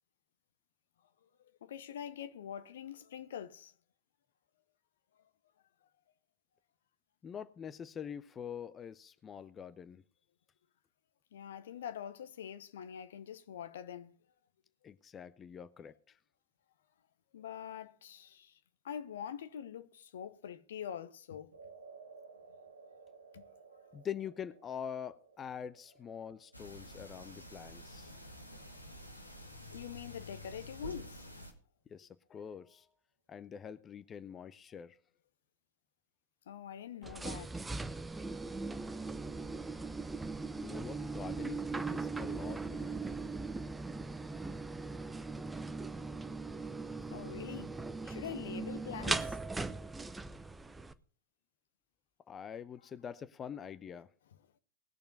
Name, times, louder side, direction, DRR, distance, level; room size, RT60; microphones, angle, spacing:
voice 1, 1.6-3.7 5.2-5.3 11.3-14.1 17.3-18.6 18.8-21.5 22.9-23.0 23.3-23.5 28.5-28.8 29.7-31.2 36.5-37.6 39.7-39.8 47.1-47.8 48.0-49.4, left 9 dB, 60° left, 1.0 m, -44 dB
voice 2, 7.2-10.0 14.8-16.2 23.9-28.1 31.9-32.9 33.3-35.0 40.6-43.0 52.3-54.1, left 8 dB, 25° left, 0.6 m, -45 dB
sound 1, 21.5-29.9, right 4 dB, 75° right, 1.3 m, -58 dB
sound 2, 26.5-31.5, equal, 90° left, 2.0 m, -49 dB
sound 3, 37.0-50.9, right 3 dB, 10° right, 0.8 m, -39 dB
19.5 x 6.8 x 5.3 m
figure-of-eight pair, 90°, 0 cm